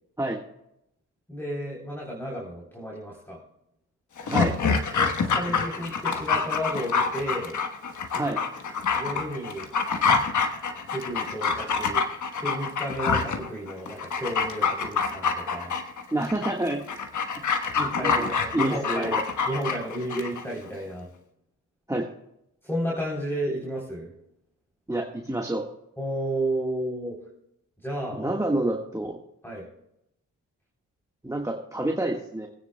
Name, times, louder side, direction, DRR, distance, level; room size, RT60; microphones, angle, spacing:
voice 1, 1.3-3.4 5.0-7.6 9.0-9.7 10.9-12.0 12.4-15.7 17.8-19.2 19.5-21.1 22.6-24.1 26.0-27.2 27.8-28.4 29.4-29.7, right 1 dB, 5° left, -3 dB, 3.5 m, -32 dB
Dog, 4.2-20.4 20.7-20.8, left 5 dB, 65° left, 1.3 m, -26 dB
voice 2, 16.1-16.9 18.0-19.2 21.9-22.1 24.9-25.6 28.1-29.2 31.2-32.5, right 1 dB, 10° right, 1 dB, 1.5 m, -28 dB
23.0 x 9.5 x 2.2 m, 0.78 s
cardioid pair, 65°, 32 cm